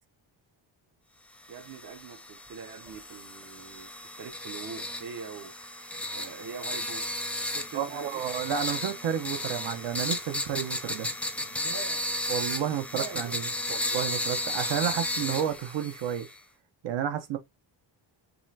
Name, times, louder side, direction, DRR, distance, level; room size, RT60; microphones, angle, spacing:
sound 1, 1.5-16.4, left 1 dB, 5° left, 0.6 m, -34 dB
voice 1, 1.5-5.5 6.1-7.1 7.5-8.2 11.4-12.2 12.6-13.7, right 6 dB, 45° right, 0.9 m, -43 dB
voice 2, 7.7-11.1 12.3-16.3 16.8-17.4, right 9 dB, 70° right, 1.1 m, -31 dB
5.5 x 3.3 x 2.7 m
cardioid pair, 150°, 45 cm